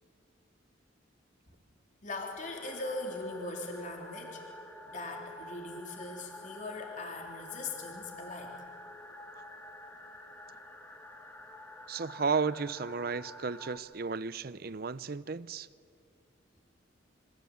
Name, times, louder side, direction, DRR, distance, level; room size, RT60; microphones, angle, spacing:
voice 1, 2.0-4.4 4.9-8.6, left 2 dB, 40° left, 3.5 m, -40 dB
sound 1, 2.4-13.8, left 1 dB, 10° left, 1.8 m, -49 dB
voice 2, 11.9-15.7, right 5 dB, 55° right, 0.6 m, -33 dB
27.5 x 24.5 x 8.6 m
head